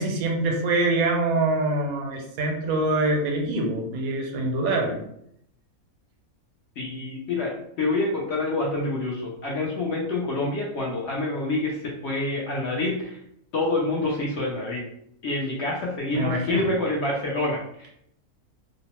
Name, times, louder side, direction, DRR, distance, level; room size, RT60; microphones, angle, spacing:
voice 1, 0.0-5.0 16.1-16.6, right 2 dB, 80° right, 1 dB, 1.1 m, -25 dB
voice 2, 6.8-13.2 13.5-14.9 15.2-17.9, left 2 dB, 60° left, -3 dB, 0.8 m, -27 dB
2.7 x 2.0 x 2.9 m, 0.73 s
omnidirectional pair, 1.5 m